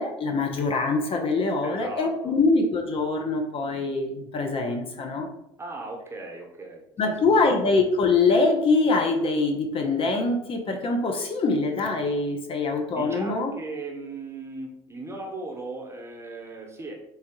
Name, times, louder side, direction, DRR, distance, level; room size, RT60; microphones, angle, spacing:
voice 1, 0.0-5.3 7.0-13.5, left 3 dB, 40° left, 3 dB, 0.6 m, -24 dB
voice 2, 1.6-2.4 5.6-7.3 12.9-16.9, right 3 dB, 20° right, 1 dB, 1.0 m, -37 dB
3.4 x 3.3 x 2.9 m, 0.79 s
hypercardioid pair, 60°, 14 cm